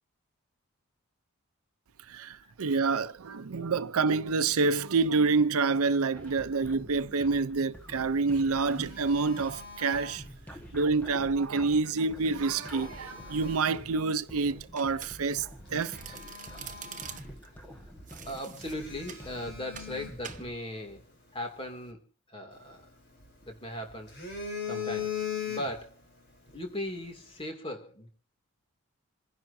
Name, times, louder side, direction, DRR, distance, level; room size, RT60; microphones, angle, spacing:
voice 1, 2.0-10.2 10.5-16.2, right 4 dB, 80° right, 0.6 m, -28 dB
sound 1, 6.1-20.6, equal, 5° left, 1.4 m, -48 dB
Telephone, 8.2-10.7 12.0-13.9 14.5-14.7 15.2-15.3 15.7-17.7 18.0-18.1 18.6-21.0 22.5-23.5 23.9-26.0 26.3-26.6, left 7 dB, 50° left, 4.9 m, -40 dB
Domestic sounds home sounds, 14.8-15.4 15.7-17.5 18.1-19.3 19.8-20.0 20.2-20.5, right 9 dB, 35° right, 1.1 m, -45 dB
voice 2, 18.2-21.0 21.3-22.0 22.3-22.9 23.4-24.1 24.6-25.2 25.5-25.9 26.5-28.1, left 1 dB, 25° left, 2.5 m, -38 dB
28.0 x 11.0 x 2.7 m
head